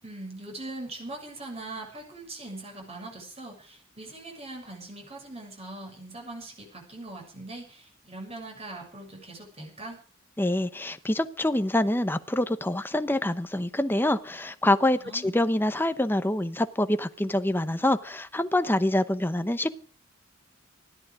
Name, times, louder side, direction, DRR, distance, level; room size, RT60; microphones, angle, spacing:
voice 1, 0.0-10.0 14.9-15.4, right 2 dB, 30° right, 1 dB, 6.8 m, -41 dB
voice 2, 10.4-19.7, left 1 dB, 10° left, 10 dB, 0.9 m, -26 dB
20.0 x 14.0 x 4.9 m, 0.40 s
head